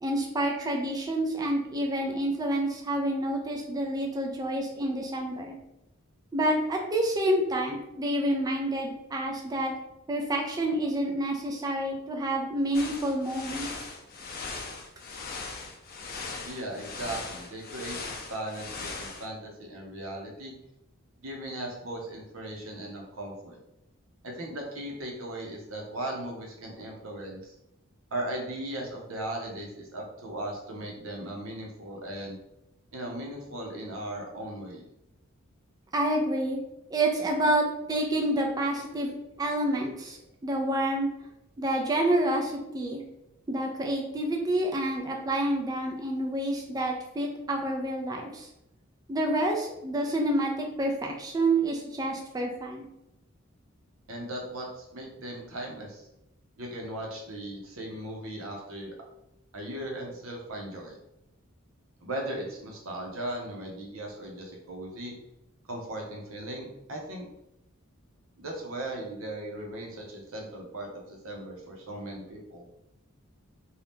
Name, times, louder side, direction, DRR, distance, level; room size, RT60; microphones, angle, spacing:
voice 1, 0.0-5.5 6.3-9.8 10.1-13.9 35.9-36.6 36.9-41.1 41.6-43.0 43.5-48.5 49.1-52.9, right 1 dB, 20° right, 1 dB, 0.4 m, -28 dB
sound 1, 12.7-19.3, left 4 dB, 50° left, 0.5 m, -39 dB
voice 2, 16.4-20.5 21.2-23.6 24.2-27.6 28.1-32.4 32.9-34.8 54.1-56.1 56.6-58.9 59.5-61.0 62.0-65.1 65.7-67.3 68.4-72.6, right 1 dB, 85° right, 0 dB, 0.8 m, -37 dB
2.7 x 2.3 x 3.4 m, 0.86 s
head